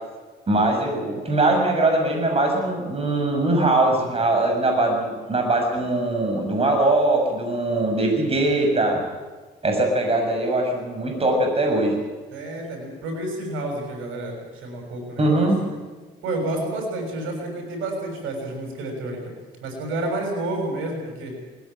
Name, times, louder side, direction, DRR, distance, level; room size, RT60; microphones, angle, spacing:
voice 1, 0.5-9.0 9.6-12.0 15.2-15.7, right 2 dB, 30° right, 2 dB, 7.0 m, -21 dB
voice 2, 12.3-15.5 16.2-19.3 19.6-21.3, right 2 dB, 90° right, 2 dB, 6.7 m, -30 dB
20.5 x 16.5 x 9.0 m, 1.3 s
cardioid pair, 90°, 20 cm